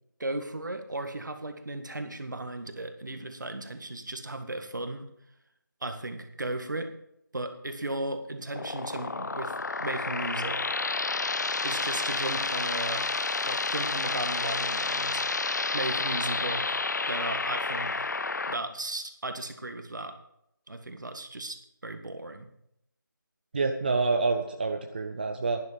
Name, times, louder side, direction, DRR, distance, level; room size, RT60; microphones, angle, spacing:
voice 1, 0.2-5.1 5.8-6.9 7.3-9.5 9.8-10.6 11.6-13.0 13.5-15.2 15.7-16.8 17.1-17.9 18.5-20.1 20.7-22.5, right 2 dB, 60° right, 7 dB, 1.7 m, -35 dB
sound 1, 8.5-18.6, left 3 dB, 60° left, 0.4 m, -30 dB
voice 2, 23.5-25.6, right 3 dB, 25° right, 5 dB, 0.6 m, -27 dB
11.5 x 11.0 x 5.0 m, 0.77 s
figure-of-eight pair, 165°, 11 cm